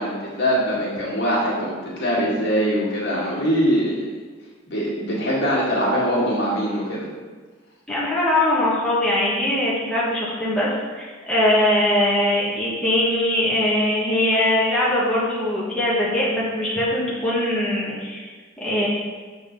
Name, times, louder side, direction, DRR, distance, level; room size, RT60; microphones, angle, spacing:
voice 1, 0.0-4.1 4.7-7.1, equal, 60° left, -6 dB, 2.0 m, -22 dB
voice 2, 7.9-18.2 18.6-18.9, left 1 dB, 5° left, -8 dB, 1.4 m, -21 dB
6.9 x 4.2 x 5.2 m, 1.4 s
head